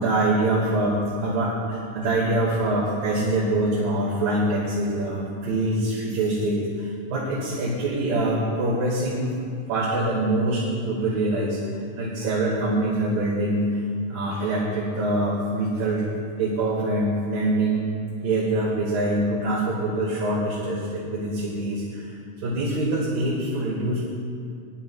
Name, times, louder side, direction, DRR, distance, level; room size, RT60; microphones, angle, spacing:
voice 1, 0.0-9.3 9.7-11.6 12.0-13.7 14.1-16.1 16.4-17.9 18.2-24.3, right 1 dB, 75° right, -5 dB, 3.6 m, -24 dB
23.5 x 11.0 x 2.3 m, 2.3 s
omnidirectional pair, 4.0 m